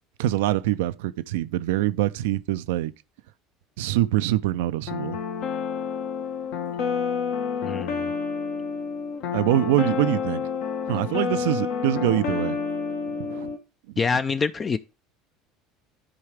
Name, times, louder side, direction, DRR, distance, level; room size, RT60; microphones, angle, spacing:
voice 1, 0.2-2.9 3.8-5.2 9.3-10.4 10.9-12.6 13.2-13.5, right 14 dB, 75° right, 0.4 m, -24 dB
sound 1, 4.9-13.6, left 6 dB, 65° left, 1.1 m, -29 dB
voice 2, 7.6-8.1 14.0-14.8, left 5 dB, 30° left, 0.4 m, -25 dB
13.5 x 4.7 x 3.2 m
hypercardioid pair, 80°, 0 cm